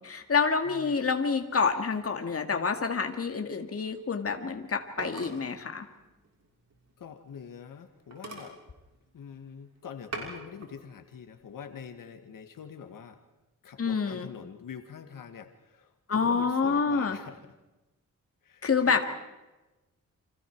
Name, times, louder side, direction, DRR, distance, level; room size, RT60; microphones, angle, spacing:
voice 1, 0.0-5.9 13.8-14.3 16.1-17.2 18.6-19.0, left 5 dB, 45° left, 5 dB, 2.2 m, -27 dB
voice 2, 0.7-1.1 7.0-8.6 9.1-13.2 13.6-17.5 18.4-19.0, left 7 dB, 90° left, 7 dB, 1.8 m, -45 dB
sound 1, 4.4-7.5 7.8-7.9 8.1-9.5 9.9-10.8 11.2-11.7, right 3 dB, 55° right, 5.9 m, -43 dB
29.5 x 26.0 x 4.7 m, 1.1 s
wide cardioid pair, 120°, 32 cm